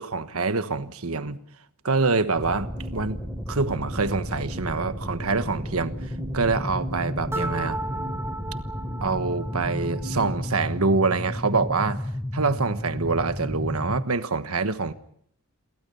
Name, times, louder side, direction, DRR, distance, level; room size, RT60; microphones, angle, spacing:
voice 1, 0.0-1.4 1.8-3.2 3.5-6.0 6.3-7.8 9.0-12.1 12.3-14.9, right 3 dB, 75° right, 1.3 m, -25 dB
sound 1, 2.4-14.0, equal, 5° left, 1.2 m, -32 dB
sound 2, 2.4-12.2, right 1 dB, 60° right, 1.8 m, -44 dB
sound 3, 7.3-10.2, right 2 dB, 10° right, 2.8 m, -34 dB
29.0 x 23.0 x 5.6 m
head